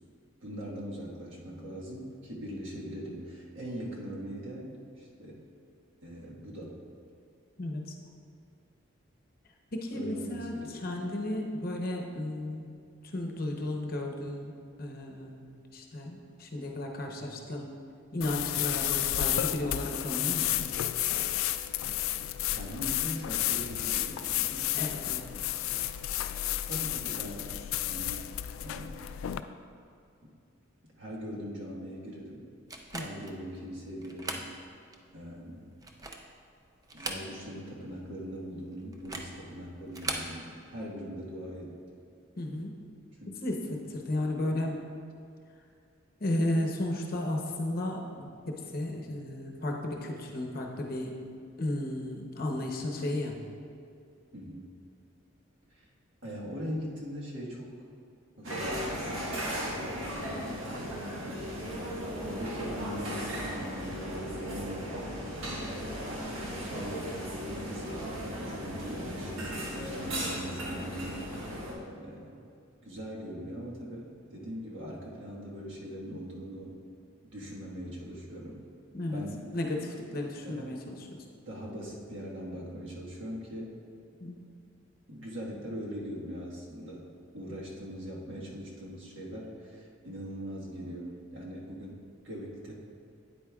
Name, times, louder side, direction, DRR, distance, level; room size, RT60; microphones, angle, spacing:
voice 1, 0.4-4.7 5.0-5.5 6.0-6.8 9.9-11.1 22.5-24.7 26.6-28.3 28.6-29.0 31.0-32.4 33.0-34.5 35.1-35.7 36.9-41.8 43.2-43.4 54.3-54.7 55.7-55.9 56.2-57.7 58.4-59.3 60.1-60.8 62.2-65.0 65.3-65.9 66.3-67.1 67.4-71.2 71.9-72.5 72.8-76.8 77.3-78.6 79.1-79.4 80.4-80.7 81.4-83.7 85.1-92.7, equal, 65° right, -4 dB, 1.5 m, -41 dB
voice 2, 7.6-7.9 9.7-12.7 13.1-15.5 15.7-17.7 18.1-20.6 24.8-25.2 32.9-33.1 42.4-42.8 43.4-44.8 46.2-51.1 51.6-53.4 78.9-79.2 79.5-81.1 84.2-84.4, left 1 dB, 45° left, 1 dB, 0.8 m, -34 dB
sound 1, 18.2-29.4, left 13 dB, 85° left, 0.3 m, -31 dB
sound 2, 32.7-33.4 34.0-34.5 34.9-35.0 35.7-36.4 36.8-37.6 37.9-38.0 38.9-39.4 39.9-40.3, right 2 dB, 15° right, 0.4 m, -38 dB
sound 3, 58.4-71.7, equal, 90° right, 1.5 m, -36 dB
9.2 x 8.4 x 2.3 m, 2.4 s
head